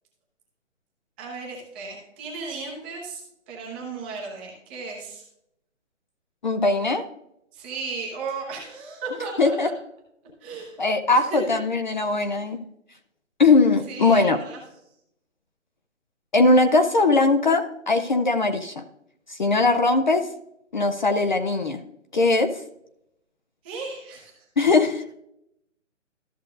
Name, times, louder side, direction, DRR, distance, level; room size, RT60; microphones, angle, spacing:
voice 1, 1.2-5.2 7.5-9.8 10.4-10.8 11.1-11.6 13.9-14.6 23.6-24.4, right 4 dB, 10° right, -2 dB, 0.7 m, -35 dB
voice 2, 6.4-7.0 9.4-9.7 10.8-12.6 13.4-14.4 16.3-18.8 19.3-20.3 20.7-21.8 22.1-22.6 24.6-25.0, left 3 dB, 40° left, 7 dB, 0.5 m, -20 dB
13.5 x 6.3 x 2.5 m, 0.79 s
hypercardioid pair, 155°, 39 cm